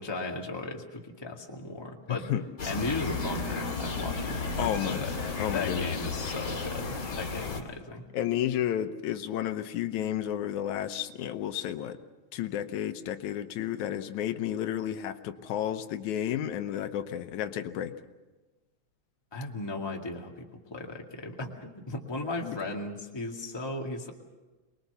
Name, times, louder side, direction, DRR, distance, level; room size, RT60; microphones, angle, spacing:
voice 1, 0.0-2.3 2.6-5.1 5.5-8.1 19.3-24.1, left 2 dB, 10° left, 1 dB, 1.7 m, -36 dB
sound 1, 2.6-7.6, left 4 dB, 45° left, 3.2 m, -33 dB
voice 2, 4.6-5.0 5.4-5.9 8.1-12.0 12.3-17.9 22.4-22.6, left 11 dB, 85° left, 9 dB, 2.3 m, -32 dB
24.0 x 21.5 x 6.9 m, 1.2 s
omnidirectional pair, 3.3 m